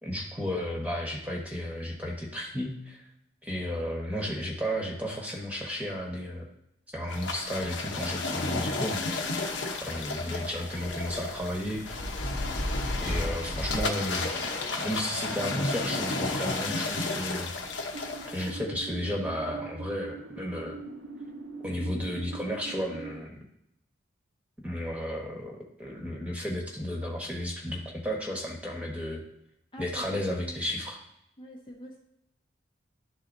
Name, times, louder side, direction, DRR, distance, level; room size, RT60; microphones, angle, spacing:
voice 1, 0.0-3.0 3.4-6.5 6.9-9.0 9.7-12.0 13.0-14.4 14.8-17.5 18.3-20.8 21.6-23.4 24.6-29.2 29.8-31.0, equal, 5° right, -1 dB, 1.1 m, -33 dB
sound 1, 7.1-18.5, left 2 dB, 75° left, 0.8 m, -32 dB
sound 2, 17.9-23.2, right 4 dB, 80° right, 0.6 m, -42 dB
voice 2, 29.7-30.6 31.4-32.0, equal, 25° left, -1 dB, 0.7 m, -44 dB
11.0 x 4.0 x 2.6 m, 0.79 s
head